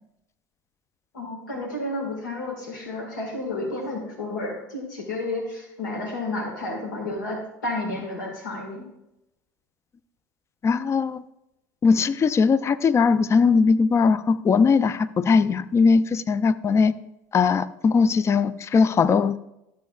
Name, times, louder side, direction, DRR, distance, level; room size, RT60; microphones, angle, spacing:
voice 1, 1.1-8.8, left 2 dB, 80° left, 1 dB, 1.9 m, -31 dB
voice 2, 10.6-11.2 11.8-16.9 17.3-19.4, left 5 dB, 30° left, 15 dB, 0.4 m, -20 dB
13.0 x 7.3 x 2.4 m, 0.87 s
hypercardioid pair, 75°, 10 cm